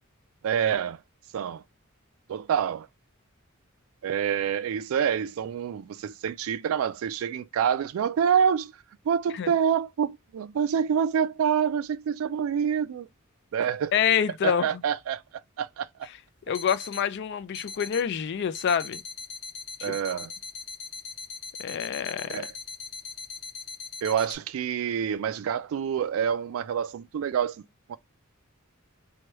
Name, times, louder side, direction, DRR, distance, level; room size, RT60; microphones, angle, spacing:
voice 1, 0.4-1.0 1.3-1.6 2.3-2.9 4.0-8.7 9.1-13.1 13.5-13.9 14.4-15.2 15.6-15.9 19.8-20.3 22.3-22.5 24.0-27.6 27.9-28.0, right 8 dB, 70° right, 0.3 m, -27 dB
voice 2, 13.9-14.7 16.5-19.0 19.8-20.0 21.6-22.5, left 8 dB, 55° left, 0.3 m, -27 dB
sound 1, 16.0-16.1 16.6-17.1 17.5-18.1 18.6-24.4, left 5 dB, 85° left, 0.8 m, -40 dB
3.1 x 2.2 x 2.9 m
head